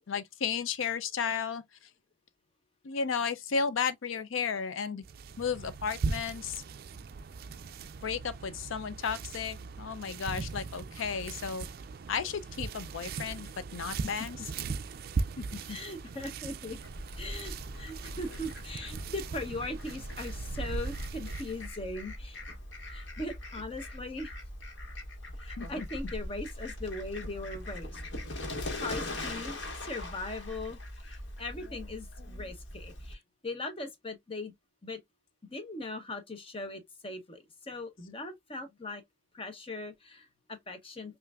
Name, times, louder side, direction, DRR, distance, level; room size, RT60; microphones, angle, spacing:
voice 1, 0.1-1.9 2.8-5.0 5.4-6.6 8.0-11.7 12.1-14.4 15.4-15.8 25.6-25.9 31.7-31.8 32.2-32.4, left 6 dB, 85° left, 0.5 m, -34 dB
sound 1, 5.0-21.7, right 4 dB, 50° right, 0.3 m, -39 dB
voice 2, 15.7-16.8 17.2-22.4 22.9-24.3 25.4-28.0 28.8-34.5 34.8-35.0 35.4-39.0 39.3-41.2, left 2 dB, 30° left, 0.8 m, -40 dB
Fowl, 16.8-33.1, left 1 dB, 65° left, 1.4 m, -41 dB
5.6 x 2.5 x 2.3 m
head